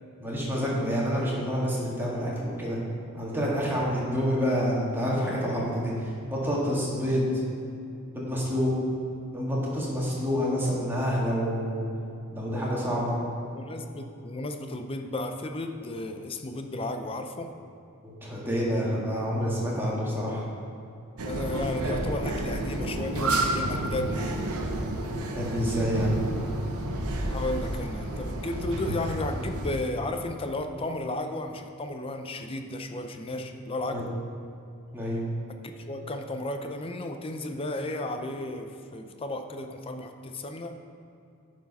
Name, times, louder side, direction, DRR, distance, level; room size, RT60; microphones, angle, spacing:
voice 1, 0.2-2.8 3.1-7.3 8.1-8.7 9.3-11.8 12.3-13.2 18.0-20.4 25.4-26.1 33.9-34.1 34.9-35.2, equal, 10° right, -5 dB, 1.7 m, -28 dB
voice 2, 13.5-17.5 21.2-24.5 27.2-34.1 35.5-40.8, left 1 dB, 25° left, 6 dB, 0.5 m, -34 dB
sound 1, 21.2-29.8, right 1 dB, 85° right, 0.9 m, -30 dB
10.5 x 4.7 x 5.5 m, 2.7 s
head